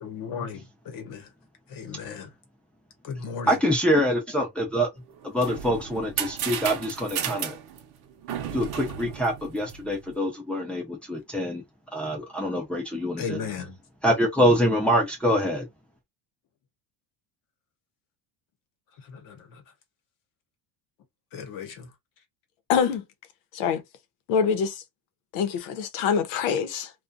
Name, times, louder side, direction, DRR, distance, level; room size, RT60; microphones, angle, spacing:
voice 1, 0.0-1.3 1.7-2.3 3.0-3.6 13.2-13.8 19.1-19.6 21.3-21.9, left 6 dB, 45° left, 0.9 m, -36 dB
voice 2, 3.5-4.9 5.2-7.5 8.5-11.6 11.9-13.4 14.0-15.7, equal, 5° left, 0.5 m, -25 dB
sound 1, 5.1-10.1, right 9 dB, 50° right, 0.7 m, -34 dB
voice 3, 22.7-23.0 23.5-23.8 24.3-24.8 25.3-26.9, left 7 dB, 85° left, 0.8 m, -25 dB
2.4 x 2.3 x 2.4 m
cardioid pair, 175°, 48 cm